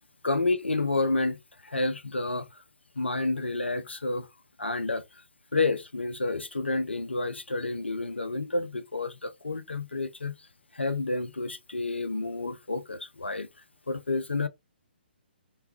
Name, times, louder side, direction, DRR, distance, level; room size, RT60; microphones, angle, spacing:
voice 1, 0.2-2.5 3.0-4.3 4.6-5.0 5.5-10.3 10.7-13.5 13.9-14.5, left 3 dB, 85° left, 0.5 m, -29 dB
3.0 x 2.2 x 3.1 m
figure-of-eight pair, 130°, 6 cm